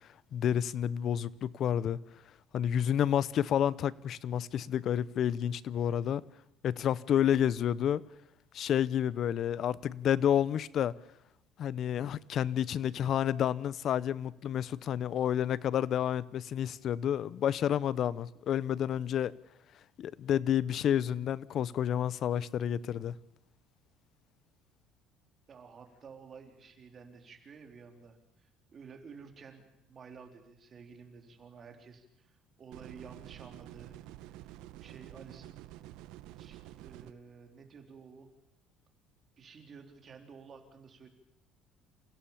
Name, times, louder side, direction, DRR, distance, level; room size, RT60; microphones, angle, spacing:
voice 1, 0.3-2.0 2.5-6.2 6.6-8.0 8.5-10.9 11.6-19.3 20.0-23.2, left 9 dB, 50° left, 0.7 m, -30 dB
voice 2, 25.5-29.6 29.9-34.0 34.3-35.6 36.4-38.3 39.4-41.1, right 5 dB, 35° right, 3.4 m, -52 dB
sound 1, 32.7-37.1, right 14 dB, 80° right, 1.0 m, -49 dB
28.0 x 16.0 x 7.3 m
cardioid pair, 125°, 0 cm